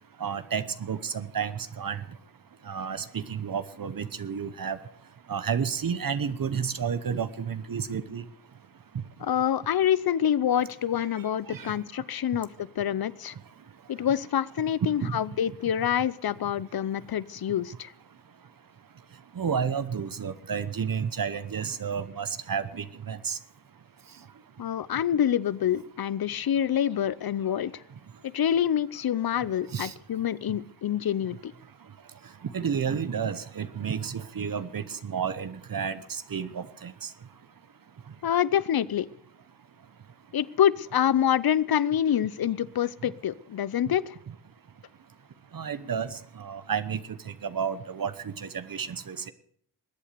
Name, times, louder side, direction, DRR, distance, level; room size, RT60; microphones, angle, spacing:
voice 1, 0.2-2.0 2.7-4.8 5.3-8.2 11.5-11.7 15.0-15.1 19.4-23.4 29.7-29.9 32.5-37.1 45.5-47.0 47.4-49.3, right 7 dB, 55° right, 12 dB, 1.0 m, -31 dB
voice 2, 9.2-13.3 13.9-17.9 24.6-27.8 28.3-31.5 38.2-39.1 40.3-44.2, left 10 dB, 60° left, 19 dB, 0.7 m, -26 dB
21.0 x 8.5 x 6.7 m, 0.64 s
cardioid pair, 65°, 41 cm